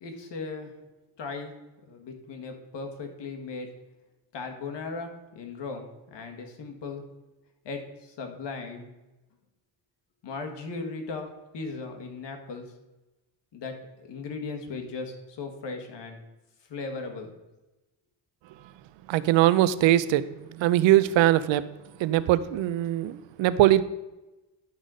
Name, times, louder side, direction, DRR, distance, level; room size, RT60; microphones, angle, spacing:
voice 1, 0.0-0.7 1.2-1.5 1.9-3.7 4.3-7.0 7.6-8.9 10.2-11.3 11.5-12.7 13.5-16.2 16.7-17.3, left 4 dB, 70° left, 5 dB, 1.7 m, -37 dB
voice 2, 19.1-20.2 20.6-21.6 22.0-23.9, right 13 dB, 90° right, 15 dB, 0.6 m, -21 dB
11.0 x 4.0 x 6.2 m, 1.0 s
cardioid pair, 90°, 44 cm